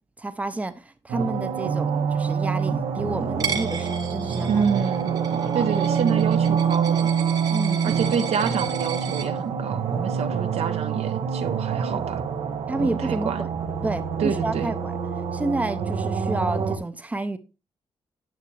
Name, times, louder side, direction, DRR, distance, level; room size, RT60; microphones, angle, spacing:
voice 1, 0.0-4.7 5.3-5.7 7.5-8.0 12.7-13.5 13.8-15.0 15.3-17.4, right 2 dB, 15° right, 0.6 m, -30 dB
sound 1, 1.1-16.8, right 6 dB, 90° right, 1.2 m, -26 dB
Coin (dropping), 3.4-9.3, right 7 dB, 35° right, 0.9 m, -35 dB
voice 2, 4.5-5.1 5.5-7.1 7.8-12.2 12.8-13.4 14.2-14.7, right 7 dB, 70° right, 0.9 m, -27 dB
9.2 x 7.3 x 3.2 m
wide cardioid pair, 170°, 11 cm